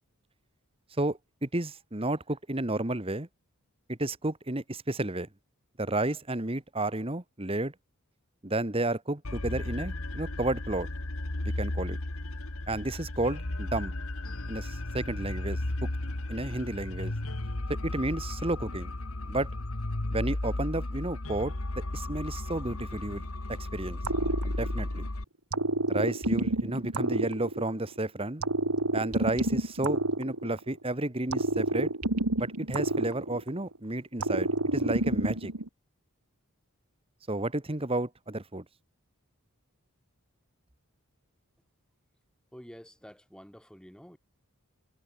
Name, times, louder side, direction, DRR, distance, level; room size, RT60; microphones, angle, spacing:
voice 1, 1.0-3.3 3.9-5.3 5.8-7.7 8.4-10.9 11.4-12.0 12.7-13.9 14.5-15.9 16.3-17.1 17.7-18.9 19.3-19.5 20.1-21.5 21.9-24.0 24.4-25.1 25.9-28.4 28.9-31.9 32.4-35.5 37.3-38.6, right 2 dB, 25° right, 1.7 m, -32 dB
sound 1, 9.2-25.2, left 1 dB, 70° left, 2.0 m, -34 dB
sound 2, 24.0-25.0 25.5-27.9 28.4-30.8 31.3-33.7 34.2-35.7, right 2 dB, 90° right, 3.7 m, -29 dB
voice 2, 42.5-44.2, equal, 5° left, 2.5 m, -49 dB
head